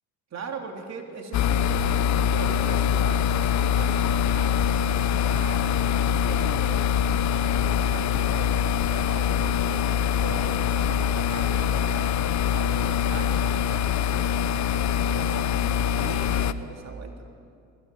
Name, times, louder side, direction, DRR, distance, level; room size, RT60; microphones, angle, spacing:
voice 1, 0.3-6.8 7.4-12.1 12.5-17.3, right 4 dB, 50° right, 2 dB, 3.6 m, -40 dB
sound 1, 1.3-16.5, left 8 dB, 50° left, 0.9 m, -24 dB
19.5 x 16.5 x 9.4 m, 2.3 s
supercardioid pair, 85°, 35 cm